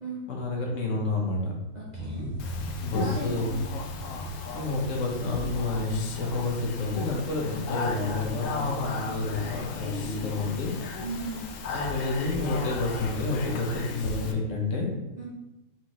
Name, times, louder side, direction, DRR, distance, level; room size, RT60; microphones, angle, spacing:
voice 1, 0.3-1.5 2.8-3.5 4.5-10.7 11.7-14.9, left 2 dB, 50° left, -1 dB, 1.1 m, -29 dB
voice 2, 1.7-2.3 2.9-3.6 11.0-11.5 15.2-15.3, right 3 dB, 75° right, -6 dB, 0.4 m, -36 dB
sound 1, 1.9-7.5 8.0-8.1, equal, 30° right, 0.9 m, -39 dB
Speech, 2.4-14.3, left 4 dB, 70° left, 0.7 m, -35 dB
4.5 x 3.7 x 3.0 m, 0.99 s
omnidirectional pair, 1.9 m